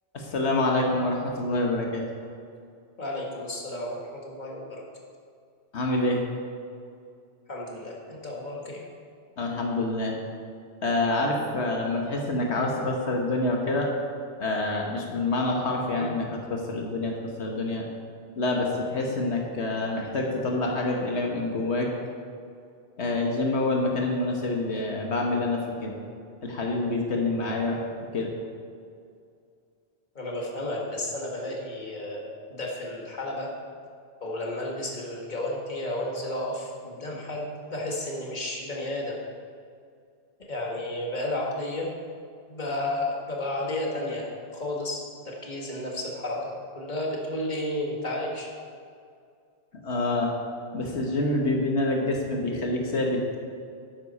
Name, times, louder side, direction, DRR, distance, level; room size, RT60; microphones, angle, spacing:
voice 1, 0.1-2.0 5.7-6.2 9.4-10.2 10.8-13.9 14.4-17.8 18.4-21.9 23.0-25.9 26.4-27.8 28.1-28.3 49.8-50.3 50.7-53.2, left 2 dB, 85° left, 0 dB, 1.6 m, -27 dB
voice 2, 3.0-4.8 7.5-8.9 15.9-16.1 30.2-33.5 34.2-39.2 40.5-41.9 42.5-48.5, left 1 dB, 45° left, -2 dB, 1.9 m, -32 dB
12.5 x 9.8 x 4.3 m, 2.3 s
omnidirectional pair, 1.1 m